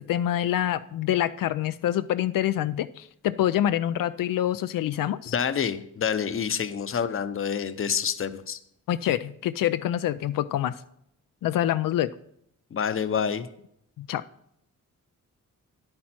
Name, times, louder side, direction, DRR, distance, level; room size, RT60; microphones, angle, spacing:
voice 1, 0.0-5.3 8.9-10.8 11.4-12.1 14.0-14.2, left 12 dB, 85° left, 12 dB, 0.5 m, -26 dB
voice 2, 5.3-8.6 12.7-13.5, left 7 dB, 40° left, 11 dB, 0.8 m, -27 dB
10.5 x 8.8 x 4.4 m, 0.73 s
wide cardioid pair, 120°, 32 cm